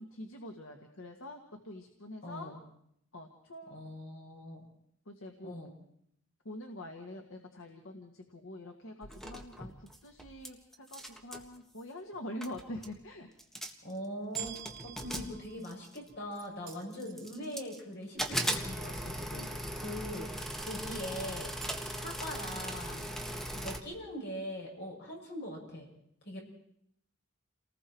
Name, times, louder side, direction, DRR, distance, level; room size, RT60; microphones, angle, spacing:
voice 1, 0.0-2.5 3.1-3.9 5.1-5.6 6.5-13.3, left 1 dB, 75° left, 3 dB, 1.9 m, -45 dB
voice 2, 2.2-2.6 3.7-4.7 5.4-5.7 13.8-14.5 14.8-19.5 19.8-20.3 20.6-21.5 22.0-23.1 23.5-25.9 26.2-26.4, equal, 55° left, -1 dB, 7.6 m, -41 dB
sound 1, 9.0-10.5 10.7-11.5 12.1-12.2 12.4-13.0 13.4-13.9 14.3-16.1 16.7-17.8 18.2-23.8, equal, ahead, 1.7 m, -38 dB
sound 2, 14.4-16.7 17.4-17.5, right 13 dB, 60° right, 2.0 m, -45 dB
sound 3, 16.0-18.1 18.5-19.3 19.7-20.1 20.4-20.9 21.3-21.7, right 8 dB, 35° right, 4.9 m, -57 dB
29.5 x 19.5 x 4.6 m, 0.72 s
head